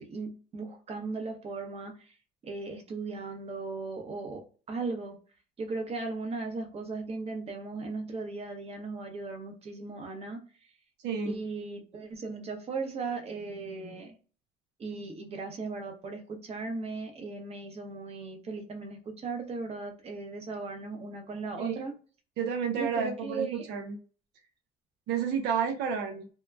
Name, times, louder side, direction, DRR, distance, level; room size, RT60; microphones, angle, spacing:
voice 1, 0.0-2.1 2.4-5.2 5.6-10.7 11.2-14.2 14.8-21.9 22.7-23.7, right 3 dB, 35° right, 3 dB, 0.8 m, -37 dB
voice 2, 11.0-11.4 21.6-21.8 22.4-24.0 25.1-26.3, right 6 dB, 85° right, 3 dB, 0.6 m, -31 dB
2.8 x 2.3 x 2.2 m, 0.37 s
cardioid pair, 110°, 17 cm